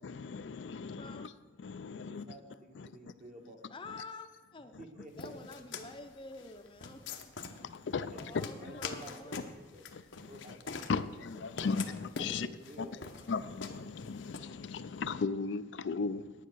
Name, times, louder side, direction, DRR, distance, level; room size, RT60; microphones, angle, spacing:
voice 1, 0.0-1.3 1.6-2.2 2.8-2.9 7.5-8.1 8.6-8.7 9.9-10.6 10.9-12.5 13.3-16.3, left 4 dB, 65° left, 0.4 m, -37 dB
voice 2, 1.9-3.6 4.8-5.6 8.0-8.3 8.6-9.9 10.2-13.1, equal, 40° right, 1.6 m, -51 dB
voice 3, 3.7-4.7 5.1-7.0 8.1-9.5, left 3 dB, 25° left, 0.6 m, -48 dB
sound 1, 5.2-14.4, left 5 dB, 85° left, 0.9 m, -44 dB
9.9 x 9.2 x 6.3 m
head